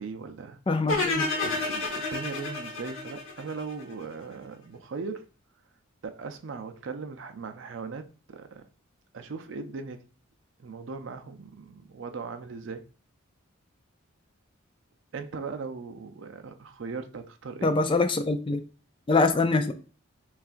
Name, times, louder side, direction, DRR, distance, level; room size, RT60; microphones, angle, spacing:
voice 1, 0.0-0.6 1.4-5.2 6.0-8.6 9.1-10.0 10.6-12.9 15.1-17.7, right 4 dB, 60° right, 0.5 m, -38 dB
voice 2, 0.7-1.3 17.6-18.6 19.1-19.7, left 3 dB, 25° left, 0.3 m, -24 dB
sound 1, 0.9-4.0, left 3 dB, 75° left, 1.1 m, -30 dB
5.6 x 2.4 x 2.5 m
head